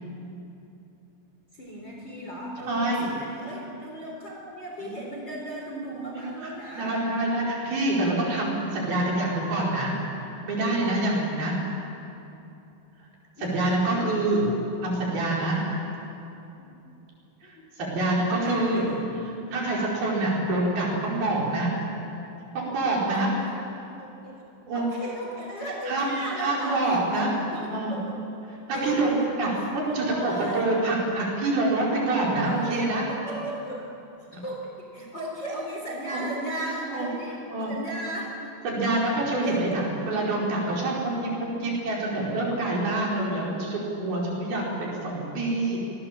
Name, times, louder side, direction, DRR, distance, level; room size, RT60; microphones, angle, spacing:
voice 1, 1.5-7.0 8.8-9.5 10.4-10.5 13.4-14.1 16.6-16.7 17.4-17.7 18.4-19.0 23.1-23.2 24.0-24.4 24.7-28.4 28.7-29.3 29.6-30.6 32.4-33.8 34.3-37.4 37.7-38.3 39.4-40.0, right 1 dB, 25° left, -2 dB, 3.7 m, -36 dB
voice 2, 2.6-3.1 4.8-4.9 6.1-9.9 10.5-11.6 13.4-14.5 14.8-15.7 17.4-18.9 19.5-21.7 22.5-23.3 23.8-23.9 24.7-24.9 25.9-27.3 27.7-28.0 28.7-29.5 29.7-33.0 36.1-36.2 36.6-37.1 37.5-37.7 38.6-45.8, right 2 dB, 55° right, -4 dB, 6.7 m, -26 dB
26.5 x 22.0 x 7.6 m, 2.8 s
omnidirectional pair, 5.4 m